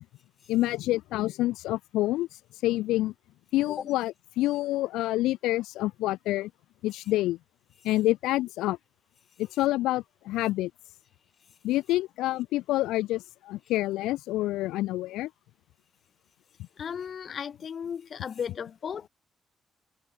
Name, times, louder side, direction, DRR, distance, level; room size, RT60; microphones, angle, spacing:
voice 1, 0.5-3.1 3.5-6.5 6.8-7.4 7.8-8.8 9.4-10.7 11.6-15.3, left 16 dB, 90° left, 0.3 m, -27 dB
voice 2, 16.8-19.1, left 7 dB, 60° left, 0.9 m, -35 dB
supercardioid pair, 55°, 0 cm